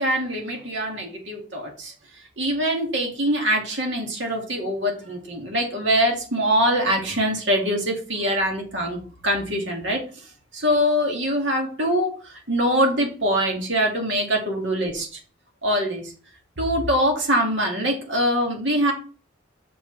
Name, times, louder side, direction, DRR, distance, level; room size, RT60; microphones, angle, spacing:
voice 1, 0.0-1.9 2.4-10.2 10.5-15.2 15.6-16.1 16.6-18.9, equal, 70° right, 1 dB, 2.4 m, -23 dB
6.9 x 6.5 x 3.4 m, 0.38 s
head